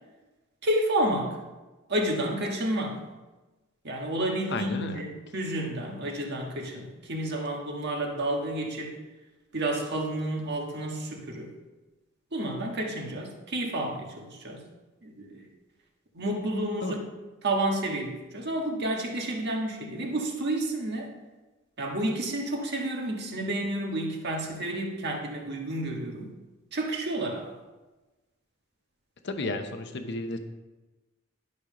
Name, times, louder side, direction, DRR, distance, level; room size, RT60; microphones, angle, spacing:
voice 1, 0.6-1.4 1.9-3.0 3.8-8.9 9.5-11.5 12.3-14.6 15.0-15.5 16.1-17.0 17.4-21.1 21.8-26.3 26.7-27.5, right 1 dB, 55° right, 1 dB, 1.6 m, -30 dB
voice 2, 4.5-5.0 16.8-16.9 29.2-30.4, left 2 dB, 60° left, 7 dB, 0.9 m, -32 dB
11.5 x 5.5 x 5.0 m, 1.1 s
head